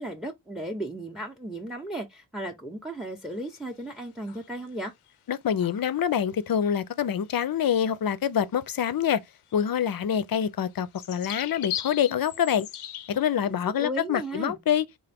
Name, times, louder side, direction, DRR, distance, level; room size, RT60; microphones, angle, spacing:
voice 1, 0.0-4.9 13.5-14.6, right 1 dB, ahead, 0.7 m, -35 dB
sound 1, 3.3-3.9 4.2-4.8 5.1-5.2 5.6-6.0 7.1-7.3 7.6-7.7 8.5-8.6 8.9-9.0 9.5-13.3, left 11 dB, 85° left, 0.6 m, -39 dB
voice 2, 5.3-9.2 9.5-12.7 13.1-14.8, left 9 dB, 45° left, 0.6 m, -26 dB
3.8 x 2.5 x 3.4 m
cardioid pair, 45°, 49 cm